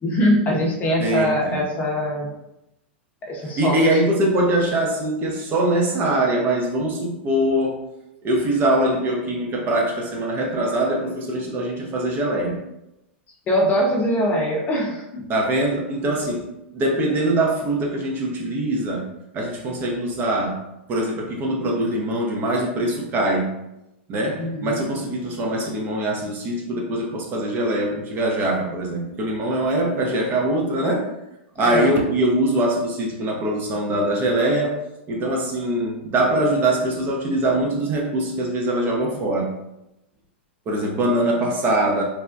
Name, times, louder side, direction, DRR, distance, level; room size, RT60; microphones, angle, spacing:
voice 1, 0.0-2.3 3.2-3.8 13.5-15.3 24.4-24.8 31.6-31.9, equal, 25° left, -2 dB, 0.7 m, -22 dB
voice 2, 1.0-1.6 3.6-7.8 8.2-12.6 15.3-16.4 16.7-19.1 19.3-20.6 20.9-23.5 24.1-31.1 31.6-34.8 35.1-39.5 40.7-42.0, right 1 dB, 35° right, -1 dB, 0.7 m, -22 dB
3.3 x 2.1 x 2.5 m, 0.88 s
hypercardioid pair, 110°, 6 cm